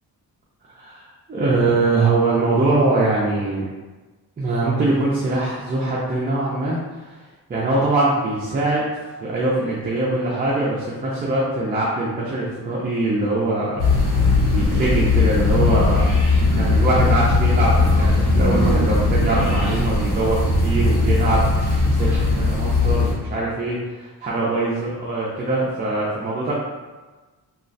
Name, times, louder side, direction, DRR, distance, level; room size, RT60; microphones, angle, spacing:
voice 1, 0.8-3.7 4.4-7.2 7.5-8.9 9.2-13.8 14.1-16.0 16.6-26.5, right 2 dB, 25° right, -6 dB, 0.4 m, -22 dB
sound 1, 13.8-23.1, left 3 dB, 80° left, 1.1 m, -18 dB
3.0 x 2.4 x 2.5 m, 1.3 s
wide cardioid pair, 135°, 38 cm